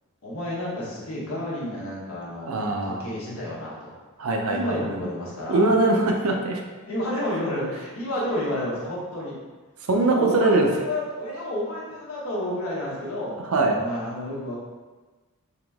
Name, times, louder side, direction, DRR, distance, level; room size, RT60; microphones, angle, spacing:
voice 1, 0.2-2.5 2.8-4.0 4.5-5.7 6.8-9.4 10.0-13.4 13.7-14.6, left 1 dB, 70° left, -5 dB, 1.2 m, -30 dB
voice 2, 2.5-3.1 4.2-4.8 5.5-6.6 9.9-10.7 13.5-13.8, right 2 dB, 70° right, 2 dB, 0.6 m, -21 dB
3.6 x 2.9 x 3.5 m, 1.3 s
head